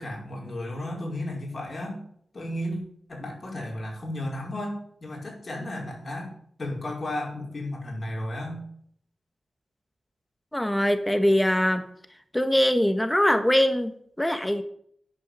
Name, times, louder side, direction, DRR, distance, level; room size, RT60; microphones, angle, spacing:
voice 1, 0.0-2.0 2.3-2.8 3.1-6.3 6.6-8.6, left 1 dB, 55° left, -1 dB, 5.0 m, -33 dB
voice 2, 10.5-11.8 12.3-14.6, equal, 10° left, 9 dB, 1.4 m, -22 dB
11.0 x 5.4 x 8.6 m, 0.65 s
cardioid pair, 45°, 0 cm